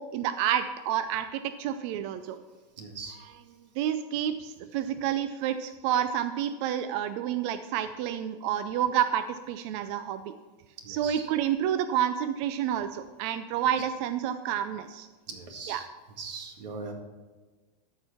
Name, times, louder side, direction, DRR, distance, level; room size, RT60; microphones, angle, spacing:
voice 1, 0.0-2.4 3.8-10.3 10.9-15.1 15.7-15.8, right 10 dB, 45° right, 10 dB, 0.4 m, -29 dB
voice 2, 2.8-3.2 10.8-11.3 15.3-15.9 16.2-16.9, right 4 dB, 85° right, 3 dB, 2.0 m, -40 dB
13.0 x 4.6 x 5.8 m, 1.3 s
supercardioid pair, 150°, 21 cm